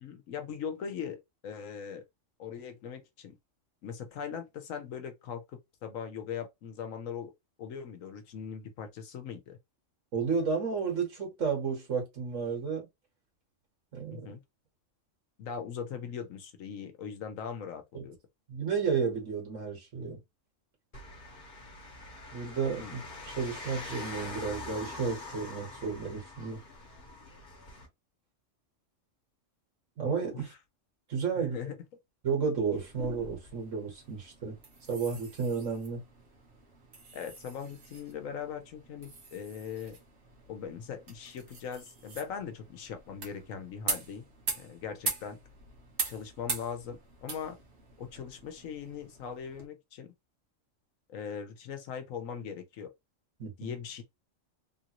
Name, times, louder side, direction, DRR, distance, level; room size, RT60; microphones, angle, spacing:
voice 1, 0.0-2.0 2.4-3.4 3.8-7.3 7.6-9.6 14.1-14.4 15.4-18.2 22.8-23.0 30.3-30.5 31.4-31.8 37.1-40.0 40.5-44.3 44.5-45.4 46.1-47.6 48.0-50.1 51.1-52.9 53.6-54.0, left 7 dB, 85° left, 1.2 m, -40 dB
voice 2, 10.1-12.9 13.9-14.3 17.9-18.1 18.5-20.2 22.3-23.0 23.4-26.6 30.0-30.5 31.1-31.6 32.2-34.6 34.9-36.0 53.4-53.7, right 5 dB, 75° right, 1.8 m, -32 dB
sound 1, 20.9-27.9, left 2 dB, 45° left, 1.3 m, -44 dB
sound 2, 32.8-49.7, right 4 dB, 60° right, 1.4 m, -42 dB
3.6 x 2.6 x 2.9 m
omnidirectional pair, 1.3 m